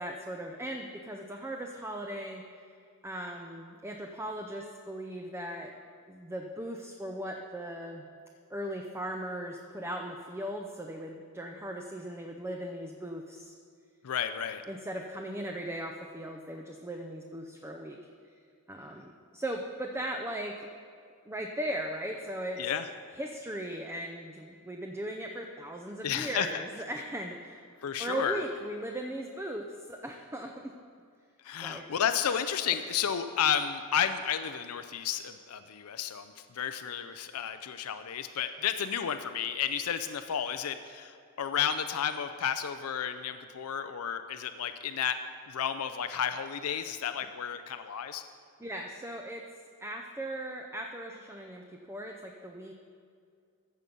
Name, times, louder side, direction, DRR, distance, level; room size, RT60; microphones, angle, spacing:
voice 1, 0.0-2.7 3.0-5.7 6.1-8.1 8.5-13.5 14.7-18.0 18.7-20.7 21.3-22.6 23.1-27.6 28.0-30.7 31.6-31.8 48.6-49.4 49.8-52.7, right 1 dB, 10° right, 2 dB, 0.6 m, -38 dB
voice 2, 14.0-14.6 22.6-22.9 26.0-26.6 27.8-28.4 31.4-45.2 45.5-48.2, left 8 dB, 75° left, 10 dB, 0.5 m, -32 dB
14.5 x 7.0 x 5.3 m, 2.3 s
head